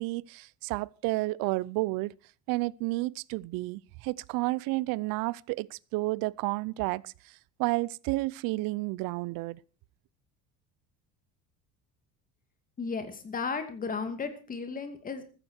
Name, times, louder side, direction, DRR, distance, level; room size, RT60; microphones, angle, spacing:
voice 1, 0.0-2.1 2.5-9.6, right 21 dB, 70° right, 0.7 m, -31 dB
voice 2, 12.8-15.2, left 5 dB, 25° left, 2.5 m, -34 dB
14.5 x 14.5 x 4.4 m
cardioid pair, 150°, 36 cm